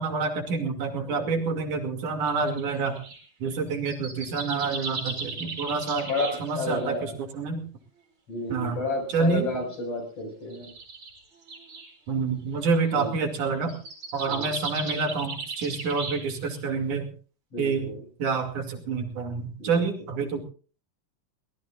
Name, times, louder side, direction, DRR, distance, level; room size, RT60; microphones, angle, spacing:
voice 1, 0.0-3.0 3.4-6.1 6.4-7.6 8.5-8.8 9.1-9.5 12.1-13.7 14.1-17.1 17.6-17.9 18.2-20.4, right 4 dB, 75° right, 4 dB, 4.0 m, -28 dB
voice 2, 1.1-1.6 5.1-5.4 6.0-7.2 8.3-10.7 12.9-13.1 14.3-14.5 17.5-18.0 19.6-19.9, left 2 dB, 50° left, 3 dB, 7.2 m, -32 dB
sound 1, 2.3-3.2 3.7-6.9 8.5-8.6 9.4-9.7 10.5-11.9 12.8-13.0 13.5-16.6, right 3 dB, 50° right, 6.0 m, -37 dB
23.5 x 19.0 x 2.5 m, 0.39 s
omnidirectional pair, 3.6 m